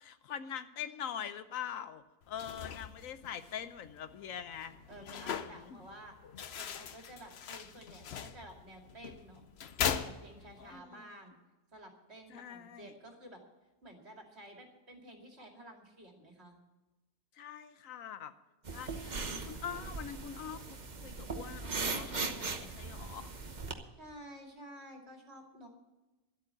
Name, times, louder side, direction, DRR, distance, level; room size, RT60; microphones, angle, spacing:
voice 1, 0.0-4.8 5.0-5.8 10.6-11.0 12.3-12.9 17.4-18.3 18.7-19.1 19.4-23.3, left 9 dB, 75° left, 12 dB, 1.2 m, -44 dB
sound 1, 2.2-10.8, left 8 dB, 55° left, 0.9 m, -41 dB
voice 2, 4.9-6.1 6.6-9.5 9.9-11.3 11.7-13.4 13.8-16.6 23.9-25.7, right 1 dB, 50° right, 2 dB, 2.7 m, -52 dB
sound 2, 18.6-23.7, right 4 dB, 35° right, 1.1 m, -39 dB
12.5 x 8.5 x 8.6 m, 1.1 s
omnidirectional pair, 1.4 m